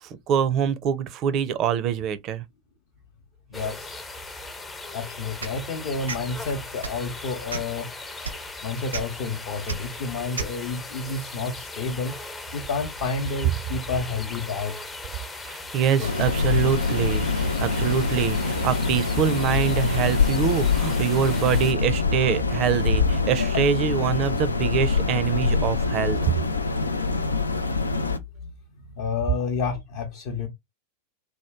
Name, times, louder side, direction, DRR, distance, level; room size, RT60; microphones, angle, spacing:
voice 1, 0.0-2.4 15.4-26.4, right 8 dB, 35° right, 0.5 m, -25 dB
voice 2, 3.5-4.0 4.9-7.9 8.6-12.2 12.5-14.7 16.0-16.1 23.4-23.6 28.4-28.5 29.0-30.5, left 4 dB, 45° left, 0.7 m, -30 dB
sound 1, 3.5-21.7, left 2 dB, 15° left, 0.6 m, -38 dB
sound 2, 5.4-5.6 6.1-6.2 6.8-7.0 7.5-7.8 8.2-8.4 8.9-9.0 9.7-9.8 10.3-10.5, right 5 dB, 75° right, 0.7 m, -31 dB
sound 3, 16.0-28.2, left 4 dB, 80° left, 0.4 m, -24 dB
2.9 x 2.2 x 3.5 m
figure-of-eight pair, 90°, 0 cm